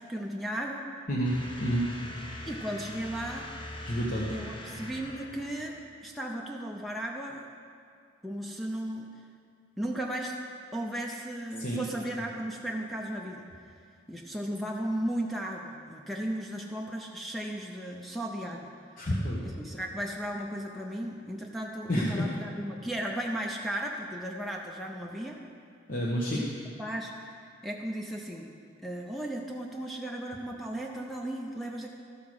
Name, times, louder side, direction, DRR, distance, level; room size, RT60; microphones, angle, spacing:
voice 1, 0.0-0.9 2.5-3.5 4.3-7.5 8.2-9.1 9.8-10.4 10.7-13.5 14.1-18.7 19.4-25.4 26.3-26.4 26.8-28.5 28.8-31.9, right 1 dB, ahead, 0 dB, 0.5 m, -35 dB
sound 1, 1.2-5.9, left 1 dB, 25° left, 1.0 m, -42 dB
voice 2, 3.9-4.2 11.6-11.8 19.0-19.4 21.9-22.3 25.9-26.4, equal, 45° left, -6 dB, 1.2 m, -28 dB
13.5 x 5.7 x 6.3 m, 2.3 s
head